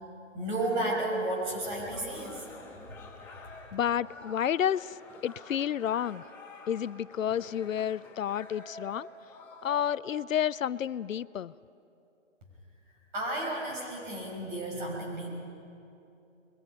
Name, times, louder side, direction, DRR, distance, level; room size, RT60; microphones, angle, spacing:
voice 1, 0.3-2.5 13.1-15.3, right 1 dB, 40° right, -1 dB, 6.3 m, -32 dB
sound 1, 0.7-9.8, left 3 dB, 5° left, 1.2 m, -49 dB
voice 2, 3.7-6.2 6.7-9.1 9.6-11.5, left 9 dB, 90° left, 20 dB, 0.6 m, -30 dB
27.5 x 22.0 x 5.6 m, 2.7 s
hypercardioid pair, 155°, 38 cm